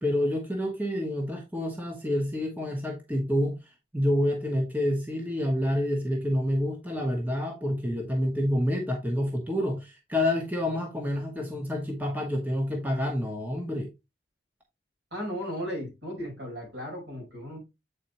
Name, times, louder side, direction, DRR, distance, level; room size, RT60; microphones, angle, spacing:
voice 1, 0.0-3.6 3.9-13.9, left 1 dB, 10° right, 1.1 m, -28 dB
voice 2, 15.1-17.6, equal, 65° right, 4.7 m, -35 dB
8.4 x 4.3 x 2.9 m
head